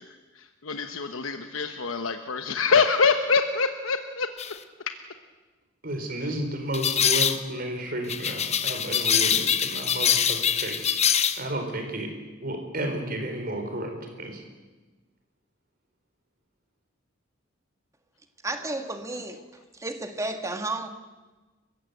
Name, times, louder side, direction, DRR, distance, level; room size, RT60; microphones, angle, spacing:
voice 1, 0.0-4.3 18.7-18.8, left 5 dB, 80° left, 7 dB, 1.1 m, -25 dB
sound 1, 4.4-4.5 6.7-7.4 8.1-11.4, left 8 dB, 35° left, 1.0 m, -24 dB
voice 2, 5.8-11.0 11.4-12.1 12.4-14.4, right 1 dB, 45° right, 4 dB, 4.4 m, -32 dB
voice 3, 18.4-19.4 19.7-20.9, right 2 dB, 15° right, 7 dB, 1.6 m, -32 dB
29.5 x 15.5 x 8.1 m, 1.3 s
head